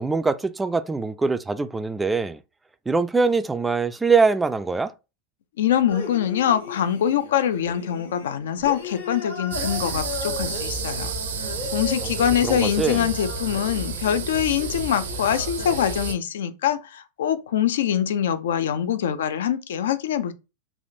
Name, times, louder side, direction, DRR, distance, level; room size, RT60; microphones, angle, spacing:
voice 1, 0.0-2.4 2.9-4.9 12.0-12.1 12.4-13.1, right 4 dB, 10° right, 0.3 m, -23 dB
voice 2, 5.6-11.1 11.4-20.3, left 9 dB, 70° left, 0.4 m, -24 dB
sound 1, 5.9-16.1, left 3 dB, 90° left, 1.4 m, -36 dB
sound 2, 9.5-16.1, right 5 dB, 75° right, 0.6 m, -31 dB
3.4 x 2.4 x 2.7 m
hypercardioid pair, 100°, 0 cm